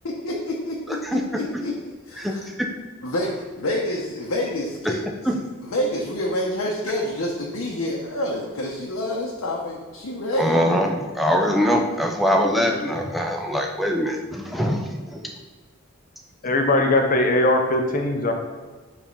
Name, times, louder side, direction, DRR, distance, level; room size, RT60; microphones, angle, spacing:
voice 1, 0.0-1.7 2.1-2.4 3.0-5.0 5.3-10.6, left 1 dB, 75° left, -3 dB, 0.8 m, -28 dB
voice 2, 0.9-1.2 1.5-1.6 2.2-2.6 4.9-5.0 5.3-5.4 10.4-15.3, equal, ahead, 1 dB, 0.5 m, -23 dB
voice 3, 16.4-18.3, left 2 dB, 40° left, 4 dB, 0.7 m, -20 dB
5.0 x 3.6 x 5.3 m, 1.4 s
head